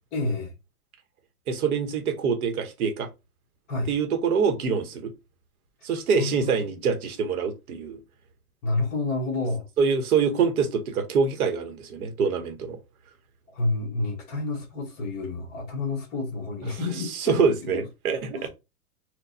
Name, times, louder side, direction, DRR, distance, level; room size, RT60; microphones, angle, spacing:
voice 1, 0.1-0.5 3.7-3.9 6.1-6.6 8.6-9.7 13.5-17.4 18.3-18.5, left 2 dB, 20° left, 1.1 m, -29 dB
voice 2, 1.5-3.1 3.9-5.1 5.8-8.0 9.8-12.8 16.6-16.8 17.2-18.5, right 5 dB, 85° right, 1.0 m, -25 dB
4.4 x 2.2 x 2.6 m
supercardioid pair, 170°, 43 cm